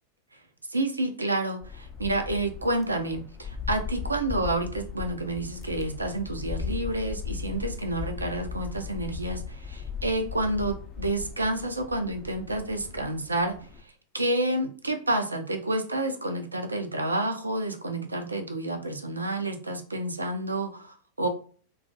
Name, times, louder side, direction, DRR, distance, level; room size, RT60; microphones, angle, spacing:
voice 1, 0.7-13.6 14.1-21.3, right 1 dB, 80° right, 5 dB, 0.3 m, -29 dB
sound 1, 1.6-13.8, left 5 dB, 25° left, 0.4 m, -37 dB
2.2 x 2.1 x 2.6 m, 0.43 s
figure-of-eight pair, 90°, 0 cm